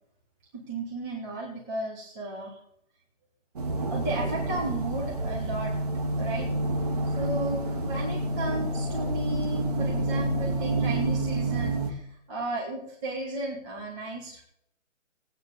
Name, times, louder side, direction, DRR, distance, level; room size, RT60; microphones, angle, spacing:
voice 1, 0.5-2.6 3.9-5.8 6.2-6.5 7.1-14.4, right 2 dB, 15° right, -5 dB, 2.7 m, -34 dB
sound 1, 3.6-11.9, right 1 dB, 30° right, 1.9 m, -28 dB
19.5 x 9.4 x 4.1 m, 0.70 s
hypercardioid pair, 175°, 39 cm